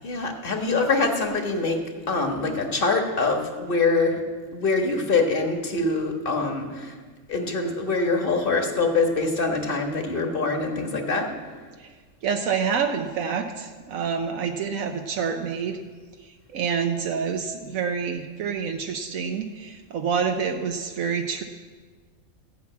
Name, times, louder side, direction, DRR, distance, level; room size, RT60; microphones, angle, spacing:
voice 1, 0.0-1.8 2.1-4.2 4.5-6.9 7.3-11.3, left 3 dB, 45° left, 3 dB, 1.6 m, -24 dB
voice 2, 12.2-15.8 16.2-21.4, right 6 dB, 80° right, 5 dB, 1.2 m, -27 dB
15.0 x 5.9 x 8.6 m, 1.5 s
omnidirectional pair, 1.4 m